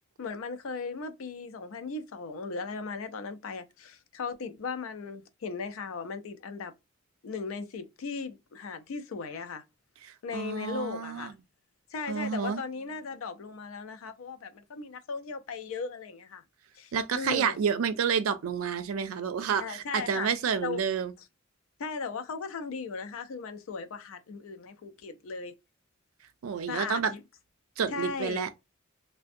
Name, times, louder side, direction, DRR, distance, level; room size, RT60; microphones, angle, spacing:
voice 1, 0.2-6.7 7.2-9.6 10.2-11.3 11.9-16.4 16.8-17.6 19.6-20.3 20.6-20.8 21.8-25.5 26.7-27.2 27.9-28.5, left 4 dB, 80° left, 0.4 m, -37 dB
voice 2, 10.0-11.3 12.1-12.6 16.9-21.1 26.4-27.1 27.8-28.5, right 6 dB, 90° right, 0.4 m, -29 dB
2.5 x 2.2 x 2.5 m
head